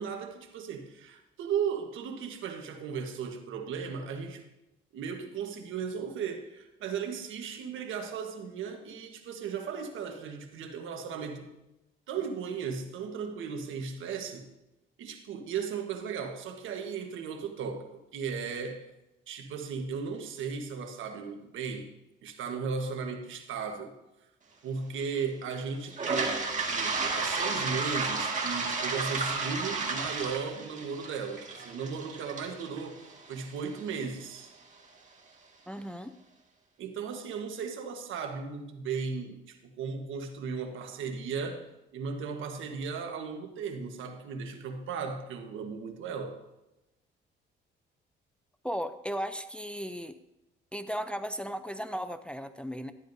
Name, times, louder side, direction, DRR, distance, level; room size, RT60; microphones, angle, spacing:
voice 1, 0.0-4.4 4.9-11.5 12.1-14.5 15.0-18.9 19.3-21.9 22.2-23.9 24.6-33.0 33.3-34.5 36.8-46.4, right 6 dB, 80° right, 1.3 m, -36 dB
Toilet flush, 25.9-33.8, right 4 dB, 40° right, 1.9 m, -32 dB
voice 2, 35.7-36.1 48.6-50.2 50.7-52.9, equal, 5° left, 0.5 m, -36 dB
12.5 x 10.5 x 2.7 m
cardioid pair, 90°, 20 cm